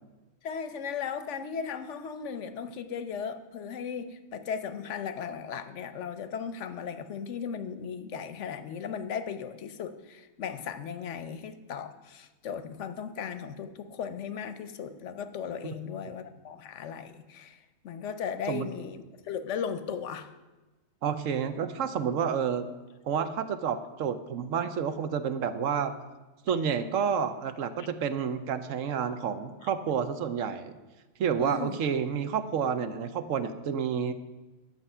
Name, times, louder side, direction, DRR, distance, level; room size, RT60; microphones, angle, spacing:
voice 1, 0.4-17.6 17.8-20.3 27.8-27.9 31.4-31.8, left 7 dB, 60° left, 11 dB, 1.0 m, -36 dB
voice 2, 21.0-22.7 23.1-25.9 26.5-30.8 31.2-34.1, right 7 dB, 65° right, 11 dB, 1.0 m, -29 dB
11.0 x 7.5 x 5.5 m, 1.1 s
omnidirectional pair, 1.5 m